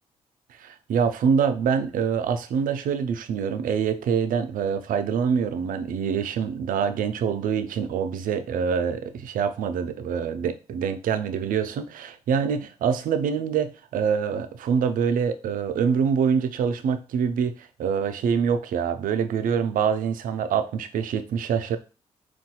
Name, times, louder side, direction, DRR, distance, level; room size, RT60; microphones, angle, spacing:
voice 1, 0.6-21.8, right 7 dB, 65° right, 0.4 m, -25 dB
4.0 x 2.3 x 2.2 m
hypercardioid pair, 40°, 15 cm